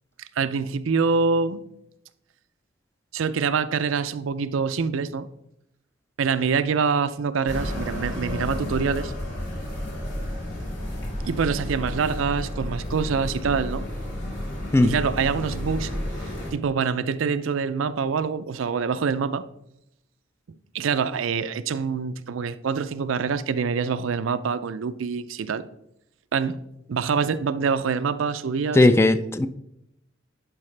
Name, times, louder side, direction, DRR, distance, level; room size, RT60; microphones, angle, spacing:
voice 1, 0.4-1.6 3.1-5.3 6.2-9.1 11.3-13.9 14.8-15.9 16.5-19.5 20.7-25.6 26.3-26.6 26.9-28.9, right 5 dB, 75° right, 0.4 m, -25 dB
sound 1, 7.5-16.5, left 1 dB, 65° left, 3.2 m, -31 dB
voice 2, 28.7-29.5, left 2 dB, 15° left, 0.3 m, -17 dB
11.0 x 4.9 x 3.3 m
head